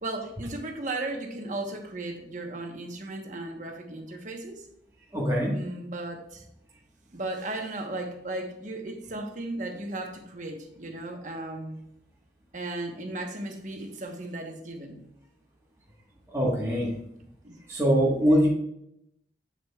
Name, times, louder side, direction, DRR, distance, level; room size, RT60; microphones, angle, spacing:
voice 1, 0.0-4.6 5.5-6.5 7.1-11.8 12.5-15.0 17.4-17.6, right 2 dB, 45° right, 3 dB, 1.1 m, -36 dB
voice 2, 5.1-5.6 16.3-16.9 17.7-18.5, equal, 15° right, -5 dB, 1.4 m, -23 dB
7.5 x 7.4 x 2.4 m, 0.77 s
head